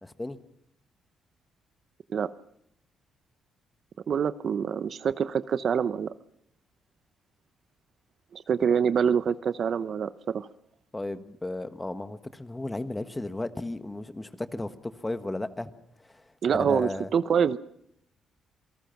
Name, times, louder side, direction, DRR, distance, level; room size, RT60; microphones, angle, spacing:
voice 1, 0.0-0.4 10.9-15.7 16.0-16.2 16.5-17.1, left 2 dB, 15° left, 10 dB, 1.4 m, -34 dB
voice 2, 4.1-6.1 8.3-10.5 16.4-17.6, right 7 dB, 55° right, 14 dB, 0.8 m, -26 dB
27.5 x 18.5 x 5.9 m, 0.71 s
cardioid pair, 90°, 0 cm